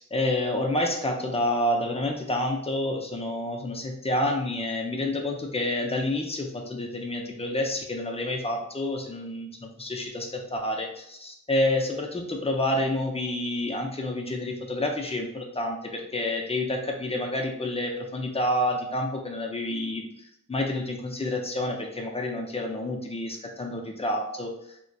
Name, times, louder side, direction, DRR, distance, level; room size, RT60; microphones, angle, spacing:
voice 1, 0.0-20.1 20.5-24.5, left 1 dB, 20° left, 2 dB, 0.4 m, -29 dB
2.7 x 2.1 x 2.3 m, 0.76 s
wide cardioid pair, 55°, 29 cm